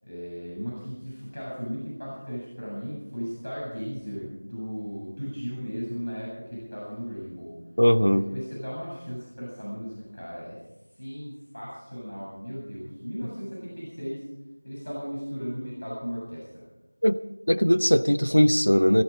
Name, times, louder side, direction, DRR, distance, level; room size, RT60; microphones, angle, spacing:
voice 1, 0.0-7.5 8.1-10.6 11.0-14.2 14.6-16.6, equal, 65° left, -5 dB, 7.8 m, -36 dB
voice 2, 7.8-8.3 17.0-17.2 17.5-19.0, equal, 90° left, 12 dB, 0.9 m, -20 dB
19.0 x 14.0 x 5.1 m, 0.99 s
figure-of-eight pair, 175°, 0 cm